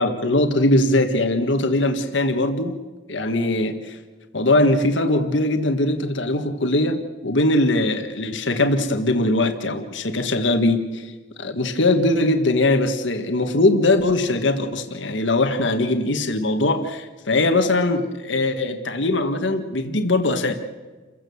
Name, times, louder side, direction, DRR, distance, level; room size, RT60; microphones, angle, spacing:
voice 1, 0.0-2.8 3.1-4.0 4.3-11.1 11.4-20.5, left 2 dB, 80° left, 6 dB, 1.6 m, -21 dB
29.0 x 16.0 x 7.1 m, 1.3 s
head